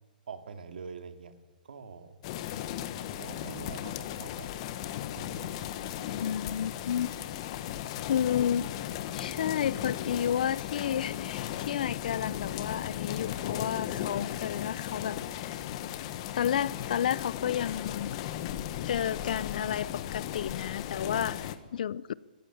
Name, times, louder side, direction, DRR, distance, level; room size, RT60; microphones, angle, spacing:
voice 1, 0.3-1.4 1.6-2.2 3.1-4.5 5.1-5.7, right 5 dB, 85° right, 2.4 m, -44 dB
sound 1, 2.2-21.6, left 11 dB, 40° left, 1.3 m, -36 dB
voice 2, 6.2-7.1 8.0-8.7 9.1-15.6 16.3-18.1 18.9-22.1, left 9 dB, 65° left, 0.6 m, -31 dB
26.0 x 15.0 x 8.6 m
hypercardioid pair, 160°, 5 cm